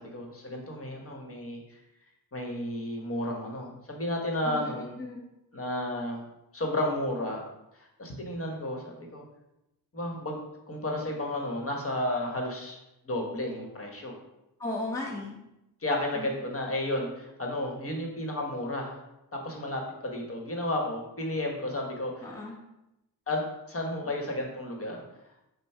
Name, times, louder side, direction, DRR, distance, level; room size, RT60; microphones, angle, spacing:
voice 1, 0.0-1.8 2.3-4.9 5.5-6.2 6.5-7.4 7.7-9.2 9.9-10.4 10.7-12.8 13.0-14.2 15.8-19.0 19.3-22.4 23.3-25.0, left 1 dB, 35° left, 1 dB, 1.1 m, -32 dB
voice 2, 4.4-5.2 14.6-15.4 16.1-16.3 22.2-22.6, left 2 dB, 10° left, -2 dB, 0.7 m, -36 dB
5.3 x 2.0 x 4.4 m, 0.90 s
cardioid pair, 75°, 37 cm